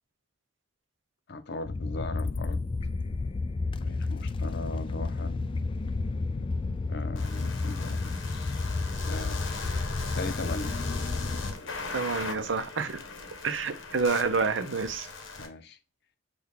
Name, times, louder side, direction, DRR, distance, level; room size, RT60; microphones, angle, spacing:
voice 1, 1.3-2.7 3.8-5.5 6.9-8.6 9.1-9.4 10.1-10.8 15.4-15.8, left 2 dB, 60° left, 0.7 m, -39 dB
sound 1, 1.6-11.5, left 3 dB, 25° left, 0.3 m, -31 dB
sound 2, 7.2-15.5, left 4 dB, 85° left, 1.0 m, -39 dB
voice 2, 11.9-13.0 13.4-15.1, right 4 dB, 75° right, 0.7 m, -28 dB
6.2 x 2.4 x 3.5 m
head